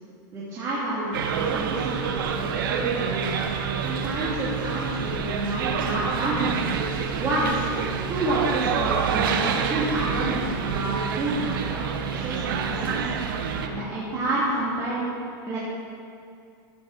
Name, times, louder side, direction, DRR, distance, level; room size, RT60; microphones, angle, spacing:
voice 1, 0.3-3.3 3.8-6.5 7.2-7.6 8.1-13.1 13.6-15.0 15.4-15.6, right 1 dB, 25° right, -8 dB, 1.7 m, -29 dB
sound 1, 1.1-13.7, right 7 dB, 75° right, 0.8 m, -27 dB
13.0 x 8.0 x 3.6 m, 2.4 s
supercardioid pair, 150°, 11 cm